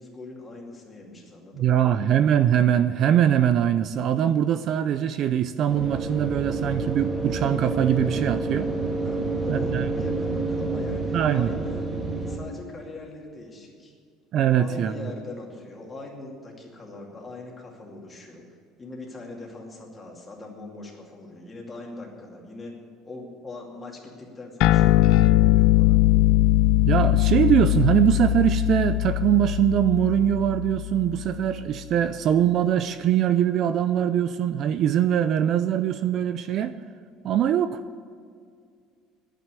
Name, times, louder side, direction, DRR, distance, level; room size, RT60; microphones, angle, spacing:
voice 1, 0.0-2.0 9.0-11.8 12.2-13.9 14.3-18.4 18.8-22.8 23.0-26.0, left 2 dB, 15° left, -1 dB, 2.5 m, -41 dB
voice 2, 1.6-8.7 9.5-9.8 11.1-11.5 14.3-15.1 26.8-36.8 37.2-37.8, right 10 dB, 45° right, 12 dB, 0.4 m, -22 dB
sound 1, 5.7-12.4, right 3 dB, 10° right, 1.9 m, -28 dB
sound 2, 24.6-31.4, left 17 dB, 65° left, 0.4 m, -20 dB
10.5 x 9.3 x 9.7 m, 2.2 s
cardioid pair, 155°, 0 cm